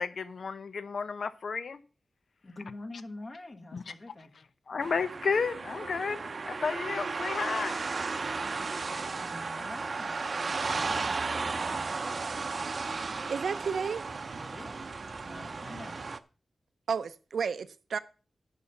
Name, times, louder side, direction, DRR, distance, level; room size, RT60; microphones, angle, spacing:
voice 1, 0.0-1.8 3.7-3.8 4.7-7.7, left 5 dB, 70° left, 0.8 m, -32 dB
voice 2, 2.4-4.3 8.1-12.5 14.4-14.9 15.2-16.0, left 2 dB, 40° left, 1.6 m, -47 dB
sound 1, 4.8-16.2, right 4 dB, 50° right, 0.7 m, -34 dB
voice 3, 13.3-14.1 16.9-18.0, right 6 dB, 85° right, 0.7 m, -32 dB
10.5 x 5.4 x 7.1 m
wide cardioid pair, 95°, 0 cm